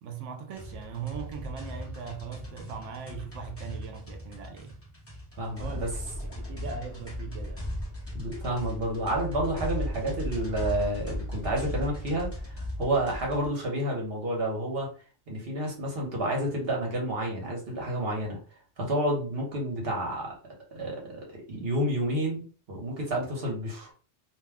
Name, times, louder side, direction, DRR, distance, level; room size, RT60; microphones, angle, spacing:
voice 1, 0.0-4.7 5.6-5.9 6.2-7.7, right 6 dB, 85° right, 0.9 m, -39 dB
sound 1, 0.5-13.5, left 1 dB, 15° left, 0.8 m, -37 dB
voice 2, 5.4-5.9 8.1-14.9 15.3-18.4 18.8-20.4 20.7-23.9, right 1 dB, 55° right, 1.2 m, -30 dB
2.6 x 2.2 x 3.5 m
omnidirectional pair, 1.2 m